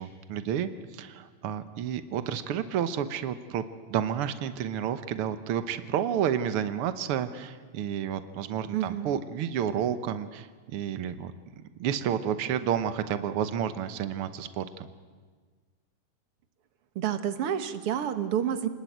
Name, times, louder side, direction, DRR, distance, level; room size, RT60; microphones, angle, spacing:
voice 1, 0.0-3.6 3.9-11.3 11.8-14.9, right 9 dB, 85° right, 11 dB, 1.2 m, -30 dB
voice 2, 8.7-9.1 17.0-18.7, right 9 dB, 55° right, 10 dB, 1.7 m, -29 dB
28.5 x 20.0 x 9.3 m, 1.5 s
omnidirectional pair, 3.9 m